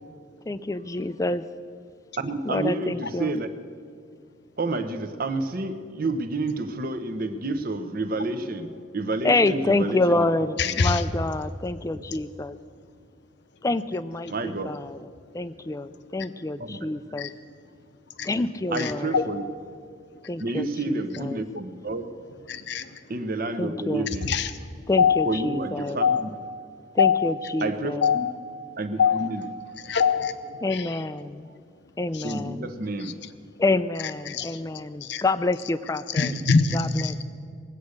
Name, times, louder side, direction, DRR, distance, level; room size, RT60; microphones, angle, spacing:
voice 1, 0.5-1.4 2.4-3.4 9.2-12.6 13.6-17.3 18.2-19.2 20.2-21.4 23.6-24.1 24.9-26.0 26.9-28.2 30.6-31.5 32.0-32.7 33.6-36.3 36.7-37.2, left 2 dB, 15° left, 13 dB, 0.4 m, -27 dB
voice 2, 2.2-3.5 4.6-10.2 10.6-10.7 14.3-14.7 16.7-16.8 17.1-17.2 18.7-19.4 20.4-22.0 23.1-24.3 24.6-24.7 25.2-26.3 27.6-28.3 28.8-29.5 32.2-33.1 36.3-36.4, right 2 dB, 50° right, 9 dB, 0.8 m, -30 dB
voice 3, 10.6-11.0 17.2-17.3 18.2-18.3 18.8-19.2 22.5-22.8 24.3-24.5 25.0-25.3 26.0-26.2 27.0-27.3 28.0-28.3 29.0-29.3 29.9-30.3 34.3-34.5 35.0-35.2 36.2-36.8, left 6 dB, 60° left, 10 dB, 0.7 m, -22 dB
20.5 x 8.3 x 6.5 m, 2.3 s
head